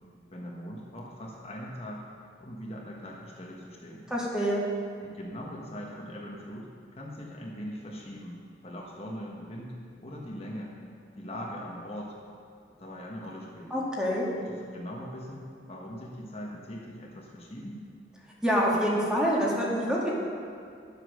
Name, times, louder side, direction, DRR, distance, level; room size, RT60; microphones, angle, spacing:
voice 1, 0.3-4.0 5.0-8.3 8.6-9.7 10.0-10.7 11.2-12.2 12.8-13.8 14.3-17.8, equal, 35° left, -2 dB, 1.4 m, -41 dB
voice 2, 4.1-4.6 13.7-14.3 18.4-20.1, equal, 5° right, -5 dB, 1.8 m, -26 dB
11.5 x 8.0 x 6.5 m, 2.3 s
head